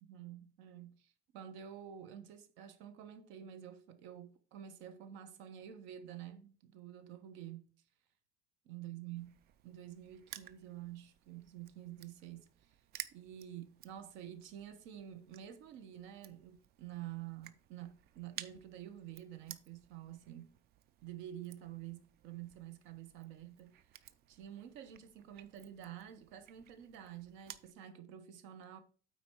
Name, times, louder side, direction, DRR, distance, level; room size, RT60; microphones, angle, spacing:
voice 1, 0.0-7.7 8.7-9.3 9.6-12.7 13.1-20.6 21.0-23.8 24.3-28.8, right 11 dB, 85° right, 1.2 m, -49 dB
Crushing, 9.2-27.7, right 11 dB, 55° right, 0.6 m, -55 dB
9.0 x 4.3 x 4.7 m
cardioid pair, 160°, 19 cm